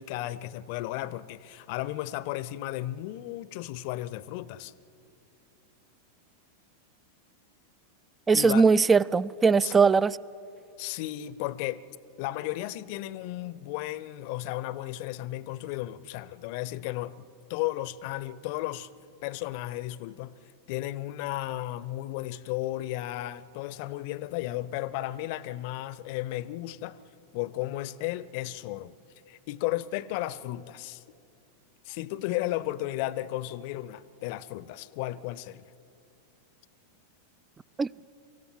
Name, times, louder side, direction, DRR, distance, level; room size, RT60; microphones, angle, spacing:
voice 1, 0.0-4.7 8.3-8.7 9.6-9.7 10.8-11.8 12.2-18.9 19.2-20.3 20.7-27.0 27.3-28.9 29.3-31.0 31.9-35.6, left 15 dB, 45° left, 0.7 m, -34 dB
voice 2, 8.3-10.2 37.8-37.9, right 5 dB, 15° right, 0.4 m, -20 dB
25.0 x 15.0 x 9.3 m
figure-of-eight pair, 90°, 0 cm